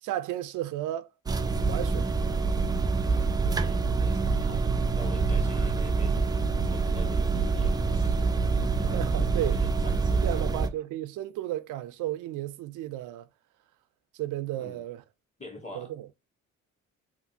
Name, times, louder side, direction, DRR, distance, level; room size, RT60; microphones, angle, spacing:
voice 1, 0.0-1.1 1.7-2.1 8.9-9.6 10.2-13.3 14.1-15.0 15.7-16.1, right 13 dB, 90° right, 0.5 m, -33 dB
sound 1, 1.3-10.7, right 4 dB, 15° right, 0.3 m, -26 dB
voice 2, 3.6-4.6 4.9-6.3 6.6-8.9 9.5-10.4 14.6-14.8 15.4-15.9, left 2 dB, 20° left, 1.3 m, -46 dB
3.4 x 2.5 x 2.7 m
cardioid pair, 90°, 30 cm